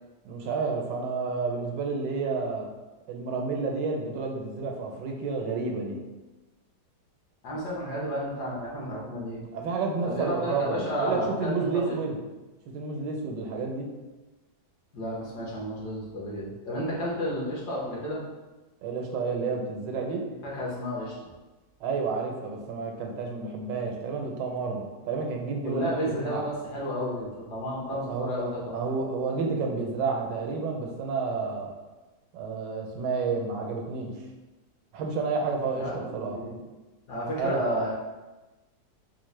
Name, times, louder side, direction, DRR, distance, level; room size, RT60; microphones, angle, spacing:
voice 1, 0.2-2.7 3.1-6.0 9.5-12.2 12.7-13.9 16.9-17.0 18.8-20.2 21.8-26.4 27.9-31.7 32.3-34.1 34.9-36.4 37.4-37.6, right 4 dB, 80° right, 1 dB, 1.3 m, -30 dB
voice 2, 7.4-9.4 10.0-12.0 14.9-18.2 20.4-21.1 25.6-28.8 35.8-36.6 37.1-37.9, equal, 70° left, -5 dB, 1.5 m, -32 dB
4.5 x 2.1 x 3.1 m, 1.1 s
omnidirectional pair, 1.9 m